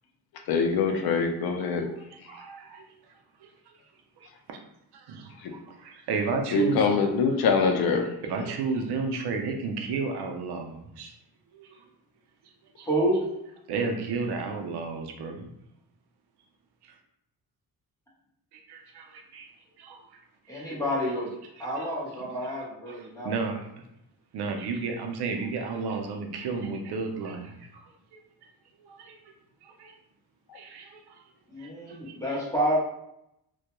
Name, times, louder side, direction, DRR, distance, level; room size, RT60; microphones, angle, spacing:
voice 1, 0.5-1.9 6.5-8.1, left 5 dB, 70° left, 4 dB, 0.5 m, -24 dB
voice 2, 1.6-2.9 3.4-3.7 4.2-4.6 4.9-6.9 7.6-7.7 8.0-11.1 11.5-11.8 12.8-12.9 13.7-15.5 16.8-16.9 18.5-19.5 19.8-20.2 20.5-20.9 21.8-21.9 22.4-23.7 24.3-28.2 28.8-29.2 29.6-29.9 30.5-31.2 31.6-32.4, right 4 dB, 90° right, 3 dB, 0.5 m, -33 dB
voice 3, 12.8-13.2 20.5-21.3 21.6-23.3 31.5-32.8, equal, 10° left, -6 dB, 0.8 m, -28 dB
2.2 x 2.2 x 2.9 m, 0.81 s
cardioid pair, 135°, 38 cm